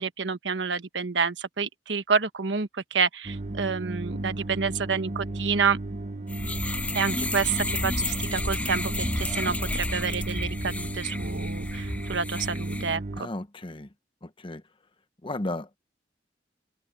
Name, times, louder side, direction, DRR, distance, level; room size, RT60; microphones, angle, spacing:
voice 1, 0.0-5.8 6.9-13.3, right 5 dB, 80° right, 1.3 m, -28 dB
sound 1, 3.2-13.2, right 2 dB, 40° right, 1.2 m, -34 dB
sound 2, 6.3-12.9, left 2 dB, 10° left, 0.6 m, -32 dB
voice 2, 13.2-13.9 14.2-14.6 15.2-15.7, left 2 dB, 30° left, 1.0 m, -34 dB
head